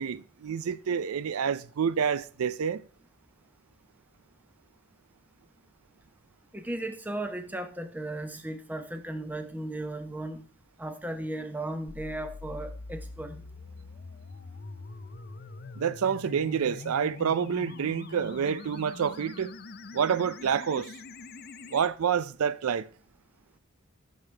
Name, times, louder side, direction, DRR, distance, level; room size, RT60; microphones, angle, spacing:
voice 1, 0.0-2.8 15.8-19.5 19.9-20.9 21.7-22.9, right 7 dB, 90° right, 0.4 m, -28 dB
voice 2, 6.5-10.4 10.8-13.4, right 1 dB, 10° right, 0.8 m, -36 dB
sound 1, 11.9-21.9, left 3 dB, 45° left, 0.5 m, -43 dB
13.5 x 6.6 x 3.3 m
head